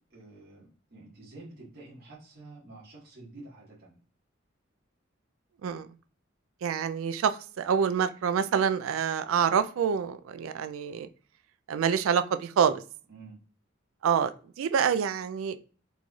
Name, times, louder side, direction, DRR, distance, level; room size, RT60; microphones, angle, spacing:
voice 1, 0.1-4.0 13.1-13.4, right 2 dB, 50° right, -5 dB, 1.2 m, -49 dB
voice 2, 6.6-11.1 11.7-12.8 14.0-15.6, right 7 dB, 85° right, 12 dB, 0.3 m, -27 dB
3.9 x 3.1 x 2.3 m, 0.39 s
head